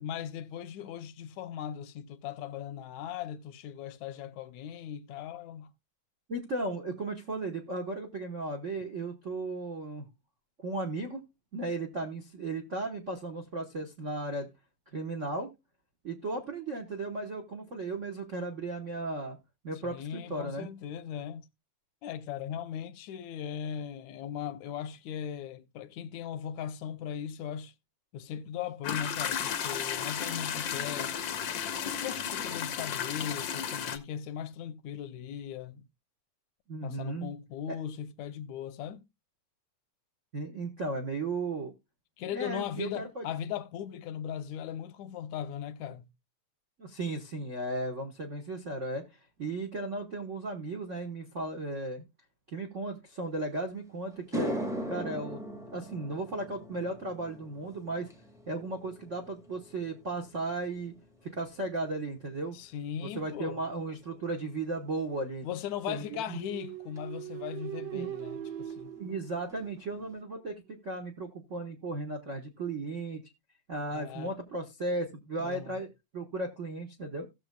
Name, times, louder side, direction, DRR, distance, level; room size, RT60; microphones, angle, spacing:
voice 1, 0.0-5.7 19.8-21.5 22.0-27.7 28.1-31.2 32.0-35.9 36.8-39.1 42.2-46.1 62.5-63.6 65.4-68.9 73.9-74.4 75.4-75.8, left 9 dB, 80° left, 2.0 m, -38 dB
voice 2, 6.3-10.1 10.6-11.2 11.5-14.5 14.9-15.5 16.0-19.4 19.6-20.7 36.7-37.3 40.3-41.7 42.3-43.2 46.8-52.0 52.5-54.6 54.9-55.4 55.7-58.1 58.5-60.9 61.2-62.6 63.0-65.5 65.9-66.4 67.9-68.1 69.0-73.2 73.7-75.9 76.1-77.3, right 2 dB, 55° right, 0.8 m, -35 dB
sound 1, 28.8-34.0, left 8 dB, 65° left, 1.2 m, -33 dB
sound 2, 53.6-53.7 54.1-62.6 62.9-63.4 67.0-67.1 68.7-68.8 69.1-69.2 69.5-70.0, equal, ahead, 0.7 m, -40 dB
sound 3, 66.3-70.1, right 12 dB, 75° right, 2.2 m, -41 dB
17.0 x 6.9 x 2.2 m
omnidirectional pair, 3.3 m